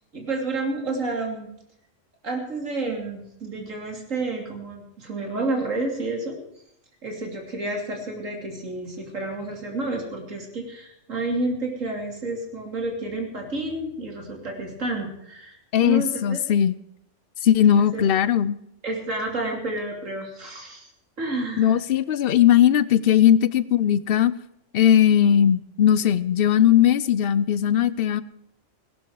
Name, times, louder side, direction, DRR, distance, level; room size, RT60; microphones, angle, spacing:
voice 1, 0.1-1.5 2.2-6.4 7.0-16.4 17.6-18.0 18.8-20.9 21.2-21.8, right 2 dB, 90° right, 2 dB, 3.3 m, -30 dB
voice 2, 15.7-16.7 17.4-18.6 21.6-24.3 24.7-28.2, left 10 dB, 55° left, 17 dB, 0.8 m, -18 dB
17.0 x 12.0 x 4.7 m, 0.78 s
omnidirectional pair, 1.3 m